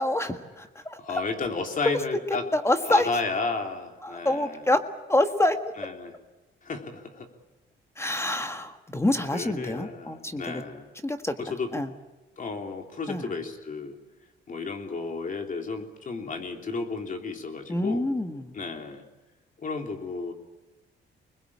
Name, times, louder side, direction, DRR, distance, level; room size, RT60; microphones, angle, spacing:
voice 1, 0.0-1.2 2.5-3.1 4.0-4.8 5.1-5.7 8.0-10.6 11.0-11.4 11.7-11.9 13.1-13.3 17.7-18.6, left 1 dB, 15° left, 7 dB, 1.7 m, -26 dB
voice 2, 1.0-2.5 2.8-4.7 5.8-6.1 6.6-7.3 9.3-10.9 11.4-11.7 12.4-14.0 14.5-18.0 18.5-19.0 19.6-20.3, left 4 dB, 40° left, 4 dB, 3.4 m, -33 dB
25.5 x 21.0 x 8.7 m, 1.1 s
cardioid pair, 90°, 20 cm